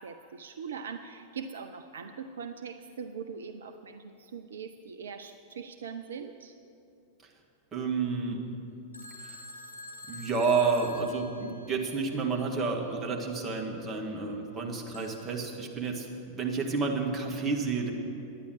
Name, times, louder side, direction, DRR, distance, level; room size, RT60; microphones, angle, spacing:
voice 1, 0.0-6.6, right 6 dB, 65° right, 9 dB, 0.4 m, -41 dB
voice 2, 7.7-8.4 9.2-9.4 10.1-16.1 16.4-17.9, right 4 dB, 20° right, 0 dB, 1.7 m, -30 dB
Telephone, 8.9-12.0 14.9-15.4, left 1 dB, 85° left, 0.9 m, -46 dB
11.0 x 9.5 x 6.4 m, 2.7 s
figure-of-eight pair, 90°, 0 cm